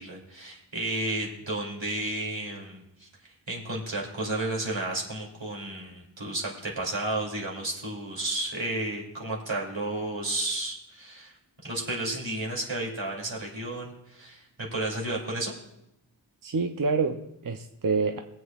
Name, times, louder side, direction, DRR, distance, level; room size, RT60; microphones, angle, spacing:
voice 1, 0.0-3.1 3.5-11.3 11.6-15.5, right 2 dB, 75° right, -2 dB, 2.7 m, -32 dB
voice 2, 16.4-18.2, right 4 dB, 45° right, 6 dB, 0.6 m, -27 dB
22.5 x 7.9 x 2.4 m, 0.83 s
wide cardioid pair, 50°, 46 cm